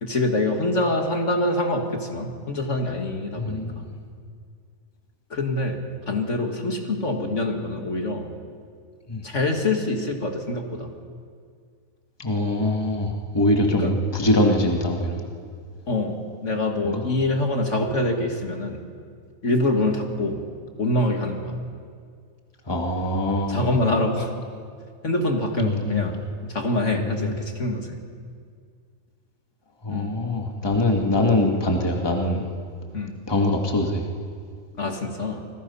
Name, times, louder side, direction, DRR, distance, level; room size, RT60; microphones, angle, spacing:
voice 1, 0.0-3.8 5.3-8.3 9.2-10.9 13.8-13.9 15.9-18.8 19.4-20.4 20.8-21.6 23.3-24.3 25.0-28.0 29.9-30.2 32.9-33.2 34.8-35.4, left 2 dB, 55° left, 3 dB, 2.2 m, -25 dB
voice 2, 3.4-3.8 9.1-9.2 12.2-15.2 16.9-17.0 22.7-23.7 25.6-26.0 26.9-27.3 29.8-32.4 33.3-34.0, left 1 dB, 15° left, 1 dB, 1.9 m, -23 dB
27.5 x 19.5 x 5.6 m, 2.1 s
omnidirectional pair, 1.5 m